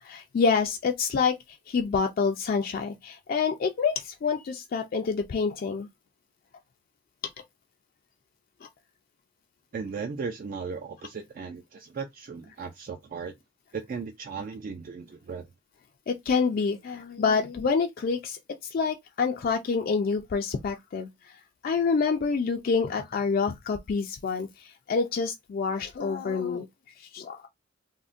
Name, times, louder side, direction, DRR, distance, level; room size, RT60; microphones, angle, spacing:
voice 1, 0.0-5.9 8.6-8.7 16.1-21.3 21.6-26.7 27.0-27.5, left 5 dB, 45° left, 0.3 m, -27 dB
voice 2, 9.7-13.3 13.7-15.5, right 5 dB, 45° right, 0.3 m, -36 dB
3.5 x 2.1 x 2.5 m
head